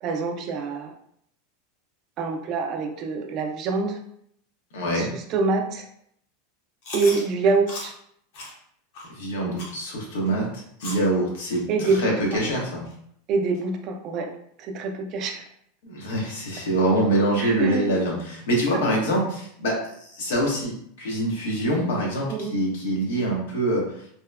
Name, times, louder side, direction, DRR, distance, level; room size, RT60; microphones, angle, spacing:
voice 1, 0.0-0.9 2.2-4.0 4.9-5.9 6.9-7.9 11.7-12.4 13.3-14.3 14.6-15.5 17.4-17.9 18.7-18.8 22.3-22.6, right 4 dB, 35° right, 4 dB, 0.3 m, -26 dB
voice 2, 4.7-5.1 9.1-12.8 15.8-20.7 21.0-23.8, right 1 dB, 90° left, -2 dB, 0.9 m, -25 dB
Chewing mastication, 6.8-7.2 7.7-7.9 8.3-8.5 8.9-9.1 9.6-9.8 10.3-10.4 10.8-11.1 11.5-11.6 12.2-12.3 12.9-13.0 13.5-13.6, left 2 dB, 60° left, 0.7 m, -36 dB
2.8 x 2.0 x 2.3 m, 0.68 s
supercardioid pair, 160°, 0 cm